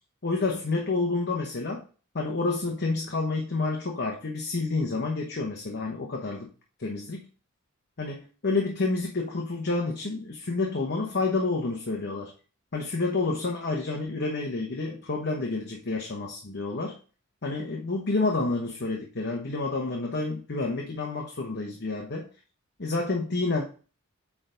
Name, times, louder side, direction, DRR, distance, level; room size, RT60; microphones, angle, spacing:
voice 1, 0.2-1.8 2.1-6.5 6.8-7.2 8.0-12.3 12.7-17.0 17.4-22.3 22.8-23.6, left 3 dB, 50° left, 0 dB, 1.0 m, -29 dB
8.6 x 3.5 x 3.8 m, 0.37 s
head